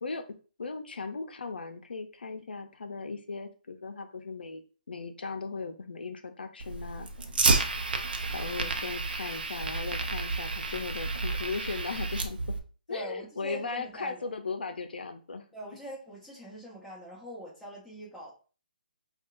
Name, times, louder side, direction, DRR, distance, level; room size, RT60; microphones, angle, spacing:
voice 1, 0.0-7.1 8.3-12.6 12.9-15.4, left 4 dB, 85° left, 7 dB, 0.6 m, -37 dB
Fire, 6.6-12.6, right 3 dB, 75° right, 0.7 m, -30 dB
voice 2, 12.9-14.3 15.5-18.3, equal, ahead, -7 dB, 1.3 m, -43 dB
5.1 x 2.4 x 2.5 m, 0.37 s
hypercardioid pair, 155°, 5 cm